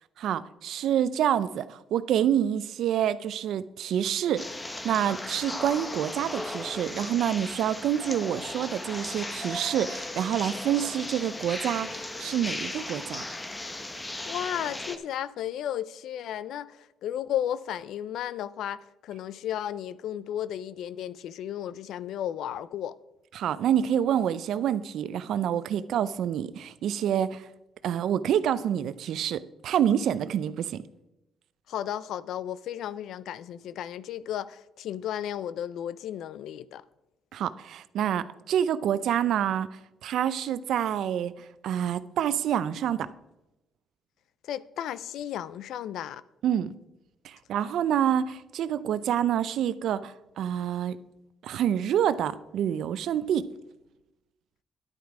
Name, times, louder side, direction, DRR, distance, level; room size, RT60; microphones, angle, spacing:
voice 1, 0.2-4.5 4.8-13.3 23.3-27.5 27.8-30.8 37.3-41.3 41.6-43.1 46.4-46.7 47.2-51.0 51.4-53.5, right 10 dB, 75° right, 0.5 m, -27 dB
sound 1, 4.4-15.0, left 2 dB, 20° left, 1.0 m, -36 dB
voice 2, 14.3-23.0 31.7-36.8 44.5-46.2, left 10 dB, 80° left, 0.4 m, -34 dB
10.5 x 9.3 x 4.8 m
cardioid pair, 90°, 0 cm